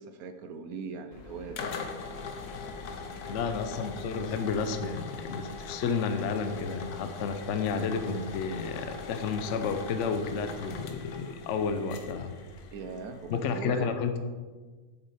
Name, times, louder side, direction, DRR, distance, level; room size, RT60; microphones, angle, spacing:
voice 1, 0.0-1.7 12.7-14.0, right 5 dB, 70° right, 8 dB, 1.1 m, -40 dB
sound 1, 1.1-13.6, left 4 dB, 75° left, 1.3 m, -41 dB
voice 2, 3.3-12.3 13.3-14.2, left 5 dB, 60° left, 7 dB, 0.9 m, -31 dB
8.1 x 7.3 x 4.2 m, 1.4 s
omnidirectional pair, 1.7 m